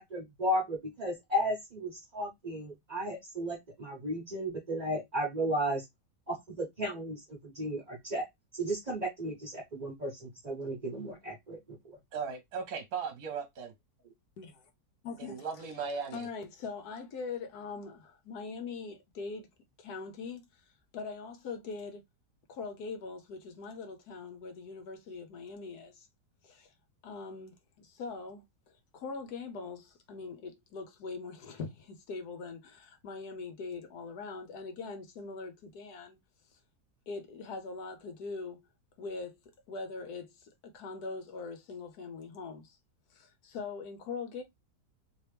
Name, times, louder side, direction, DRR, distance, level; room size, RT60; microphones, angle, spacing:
voice 1, 0.0-5.8 6.3-8.3 8.5-11.6, equal, 30° right, 1.0 m, -34 dB
voice 2, 12.1-13.7 15.2-16.3, right 5 dB, 65° right, 1.2 m, -37 dB
voice 3, 14.4-14.7 15.0-15.7 16.1-19.5 19.8-20.6 20.9-22.0 22.5-26.1 26.4-26.7 27.0-28.4 28.9-36.2 37.1-38.6 39.0-39.4 39.7-42.8 43.1-44.4, left 4 dB, 75° left, 1.2 m, -42 dB
3.0 x 2.9 x 3.2 m
omnidirectional pair, 1.8 m